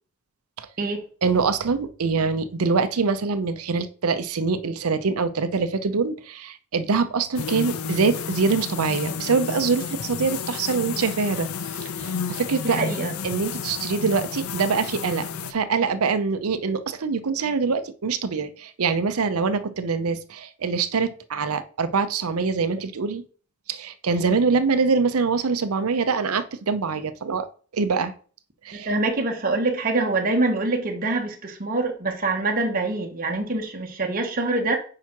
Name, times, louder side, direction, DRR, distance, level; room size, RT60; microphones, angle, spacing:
voice 1, 1.2-12.8 13.2-23.2 23.7-27.5 27.7-28.1 28.6-28.9, right 4 dB, 85° right, 0.6 m, -24 dB
sound 1, 7.4-15.5, left 6 dB, 80° left, 0.5 m, -31 dB
voice 2, 12.6-13.2 28.9-34.8, right 2 dB, 40° right, 0.9 m, -25 dB
4.8 x 4.5 x 5.8 m
head